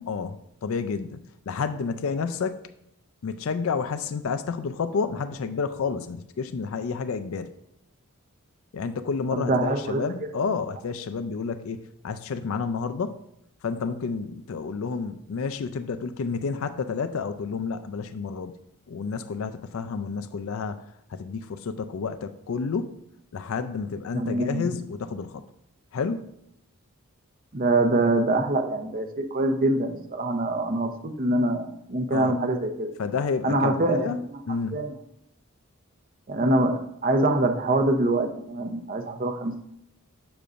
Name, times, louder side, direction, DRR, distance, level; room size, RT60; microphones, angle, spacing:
voice 1, 0.1-2.6 3.2-7.5 8.7-13.2 13.6-18.6 18.9-23.0 23.3-25.4 25.9-26.3 32.1-32.4 33.0-34.8, left 5 dB, 65° left, 10 dB, 0.4 m, -30 dB
voice 2, 9.3-10.0 24.1-24.6 27.5-30.9 31.2-32.9 33.4-34.2 34.7-34.9 36.3-39.6, right 2 dB, 40° right, 5 dB, 0.7 m, -24 dB
7.9 x 6.8 x 2.5 m, 0.76 s
head